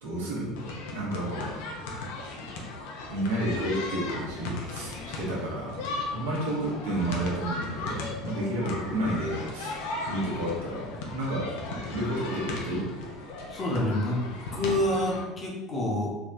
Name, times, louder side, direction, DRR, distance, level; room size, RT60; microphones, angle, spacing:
voice 1, 0.0-0.6 0.9-1.6 3.1-5.8 6.1-11.5 11.9-12.8, right 1 dB, 70° right, -4 dB, 1.0 m, -31 dB
sound 1, 0.6-15.2, left 2 dB, 60° left, 0.6 m, -36 dB
voice 2, 13.5-16.1, left 1 dB, 25° left, -3 dB, 1.0 m, -28 dB
3.4 x 3.2 x 2.6 m, 1.1 s
figure-of-eight pair, 65°, 0 cm